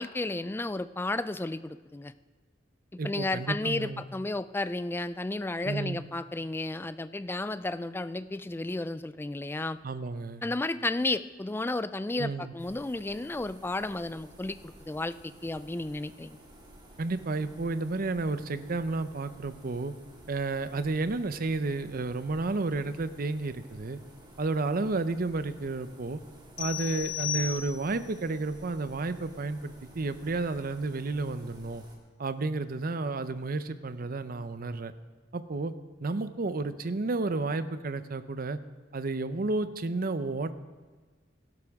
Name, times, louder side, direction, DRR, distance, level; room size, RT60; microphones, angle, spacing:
voice 1, 0.0-2.1 2.9-9.8 10.4-16.4, left 2 dB, 10° left, 14 dB, 0.3 m, -33 dB
voice 2, 3.0-4.0 5.6-6.0 9.8-10.4 12.1-12.5 17.0-19.9 20.3-24.0 24.4-26.2 26.6-31.8 32.2-34.9 35.3-35.7 36.0-38.6 38.9-40.5, right 3 dB, 50° right, 12 dB, 0.6 m, -31 dB
sound 1, 12.6-32.0, right 1 dB, 25° right, 2.2 m, -53 dB
sound 2, 26.6-28.1, left 9 dB, 75° left, 1.2 m, -34 dB
17.5 x 12.0 x 3.6 m, 1.4 s
head